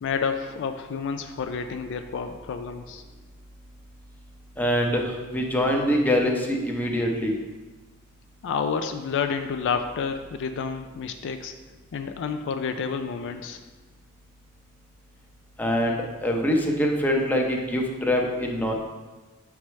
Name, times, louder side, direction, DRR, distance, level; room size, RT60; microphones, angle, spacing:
voice 1, 0.0-3.0 8.4-11.5 11.9-13.6, left 6 dB, 60° left, 7 dB, 0.3 m, -29 dB
voice 2, 4.6-7.3 15.6-18.7, equal, 10° left, 0 dB, 0.7 m, -24 dB
7.4 x 4.7 x 3.2 m, 1.3 s
head